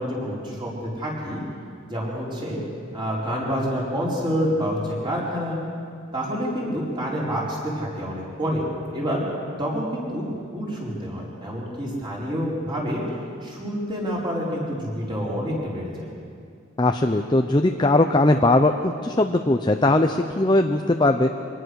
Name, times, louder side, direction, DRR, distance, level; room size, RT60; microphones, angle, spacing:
voice 1, 0.0-1.4 1.9-2.6 2.9-5.6 6.1-8.7 8.9-9.2 9.6-13.0 13.4-16.1, equal, 25° right, -4 dB, 4.7 m, -28 dB
voice 2, 16.8-21.3, left 2 dB, 20° left, 5 dB, 0.6 m, -19 dB
24.5 x 18.5 x 6.4 m, 2.3 s
head